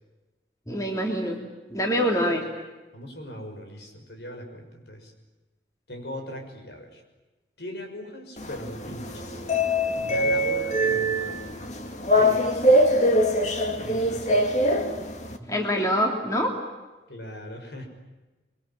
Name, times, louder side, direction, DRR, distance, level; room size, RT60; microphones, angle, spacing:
voice 1, 0.7-1.4 1.7-2.5 15.4-16.5, equal, 20° left, 2 dB, 2.9 m, -25 dB
voice 2, 2.9-5.1 5.9-7.0 7.6-9.4 9.9-11.7 12.1-12.7 13.8-14.4 17.1-17.9, left 1 dB, 75° left, 4 dB, 6.1 m, -39 dB
sound 1, 8.4-15.4, equal, 40° left, 2.2 m, -23 dB
25.0 x 24.0 x 9.1 m, 1.2 s
head